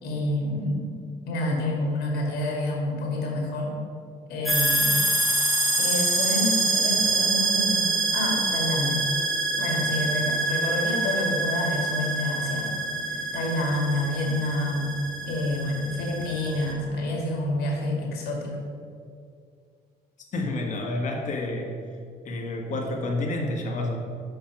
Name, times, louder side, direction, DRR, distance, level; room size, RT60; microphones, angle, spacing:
voice 1, 0.0-0.9 1.3-3.7 4.3-5.0 5.8-9.1 9.6-12.7 13.1-15.0 15.3-18.6, left 1 dB, 65° left, -1 dB, 2.1 m, -28 dB
sound 1, 4.5-16.7, right 2 dB, ahead, 1.3 m, -26 dB
voice 2, 20.3-21.8 22.2-24.0, left 2 dB, 45° left, 1 dB, 1.4 m, -29 dB
6.0 x 5.5 x 5.9 m, 2.3 s
cardioid pair, 110°, 17 cm